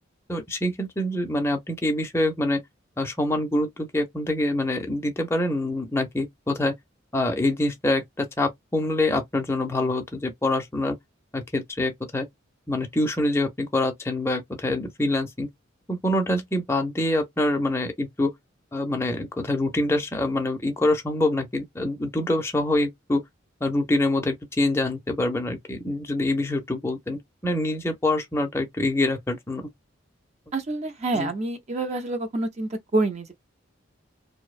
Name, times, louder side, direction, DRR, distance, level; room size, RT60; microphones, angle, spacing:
voice 1, 0.3-2.6 3.0-6.7 7.1-11.0 11.3-12.3 12.7-15.5 15.9-18.3 18.7-23.2 23.6-29.7 31.1-31.3, left 1 dB, 15° left, 0.5 m, -25 dB
voice 2, 30.5-33.3, right 2 dB, 35° right, 0.5 m, -27 dB
2.6 x 2.0 x 2.4 m
head